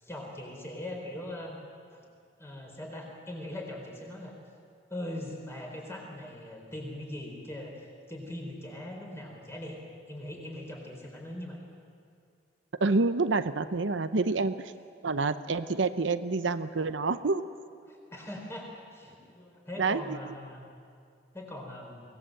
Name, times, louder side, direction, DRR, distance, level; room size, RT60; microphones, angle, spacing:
voice 1, 0.0-1.6 1.9-2.0 2.4-4.3 4.9-9.8 10.1-11.6 17.8-20.6 21.3-22.0, left 1 dB, 15° left, 0 dB, 4.2 m, -41 dB
voice 2, 12.8-14.7 15.0-17.4 19.8-20.2, right 3 dB, 85° right, 11 dB, 0.8 m, -28 dB
24.0 x 18.0 x 7.8 m, 2.3 s
head